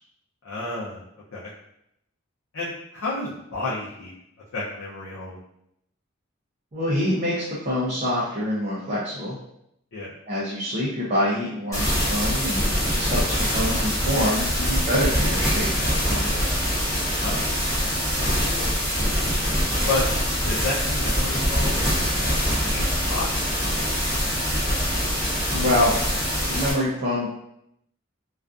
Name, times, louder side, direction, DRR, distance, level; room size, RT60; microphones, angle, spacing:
voice 1, 0.4-1.0 1.3-1.5 2.5-4.1 4.5-5.4 9.9-10.1 13.3-13.4 17.2-17.4 18.2-18.7 19.8-20.1 20.4-21.9 22.4-23.3, left 2 dB, 80° left, -8 dB, 0.5 m, -31 dB
voice 2, 6.7-9.4 10.3-13.2 13.5-16.4 25.5-25.9 26.5-27.3, left 1 dB, 35° right, -7 dB, 0.5 m, -26 dB
sound 1, 11.7-26.7, equal, 15° left, 0.7 m, -24 dB
2.4 x 2.3 x 2.3 m, 0.78 s
head